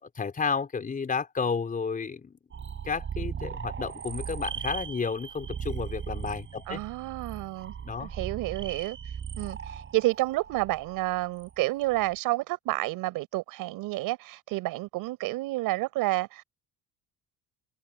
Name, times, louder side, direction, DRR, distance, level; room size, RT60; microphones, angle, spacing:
voice 1, 0.0-2.4 2.8-6.8 7.8-8.1, left 5 dB, 25° left, 4.2 m, -32 dB
sound 1, 2.5-12.1, right 7 dB, 35° right, 6.2 m, -38 dB
voice 2, 6.7-7.7 8.0-16.4, right 19 dB, 75° right, 4.9 m, -30 dB
cardioid pair, 125°, 34 cm